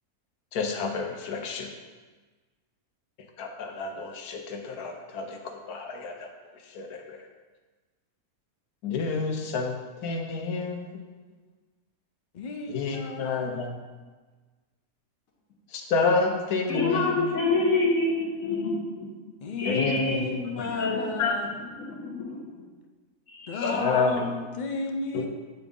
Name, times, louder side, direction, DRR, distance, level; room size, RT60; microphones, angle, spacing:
voice 1, 0.5-1.7 3.4-6.3 6.7-7.2 8.8-9.7 10.0-11.0 12.7-13.7 15.7-17.2 19.6-20.4 21.2-21.3 23.7-24.2 25.1-25.2, left 4 dB, 90° left, 3 dB, 1.2 m, -29 dB
voice 2, 12.3-13.7 16.0-16.1 17.3-17.4 19.4-21.7 23.5-25.3, left 3 dB, 50° left, 3 dB, 0.5 m, -34 dB
voice 3, 16.7-19.1 19.6-21.1 21.8-22.4 23.3-24.2, left 3 dB, 65° left, -1 dB, 1.5 m, -27 dB
8.2 x 3.9 x 3.7 m, 1.3 s
omnidirectional pair, 1.5 m